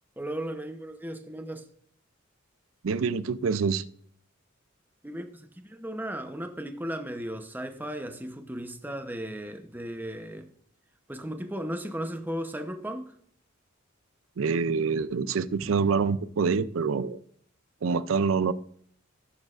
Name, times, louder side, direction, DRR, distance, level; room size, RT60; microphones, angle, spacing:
voice 1, 0.2-1.7 5.0-10.5 11.1-13.2, right 1 dB, 10° right, 0.8 m, -36 dB
voice 2, 2.8-3.8 14.4-17.2 17.8-18.5, right 5 dB, 75° right, 0.5 m, -26 dB
15.5 x 6.4 x 2.5 m
head